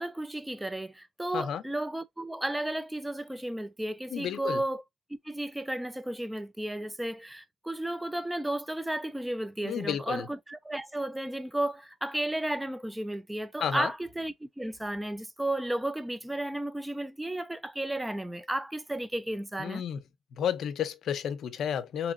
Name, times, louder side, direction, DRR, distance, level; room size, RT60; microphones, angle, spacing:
voice 1, 0.0-4.8 5.2-19.8, right 1 dB, 5° right, 0.4 m, -33 dB
voice 2, 4.1-4.6 9.7-10.3 13.6-13.9 19.6-20.0 20.4-22.1, left 9 dB, 70° left, 0.5 m, -31 dB
3.9 x 2.9 x 2.4 m
cardioid pair, 145°, 0 cm